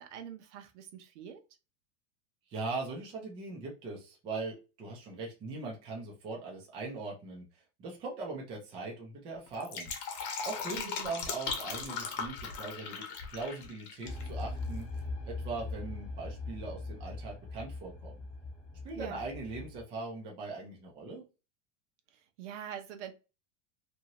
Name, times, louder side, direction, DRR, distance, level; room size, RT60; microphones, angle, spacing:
voice 1, 0.0-1.4 10.7-11.2 19.0-19.2 22.1-23.1, right 9 dB, 65° right, 0.8 m, -44 dB
voice 2, 2.5-7.4 7.8-9.9 10.5-18.2 18.8-21.2, right 3 dB, 15° right, 0.4 m, -40 dB
Fill (with liquid), 9.5-14.3 14.5-14.6, left 5 dB, 45° left, 0.9 m, -38 dB
sound 1, 14.0-19.8, left 2 dB, 20° left, 0.8 m, -41 dB
2.7 x 2.7 x 2.9 m
supercardioid pair, 160°, 38 cm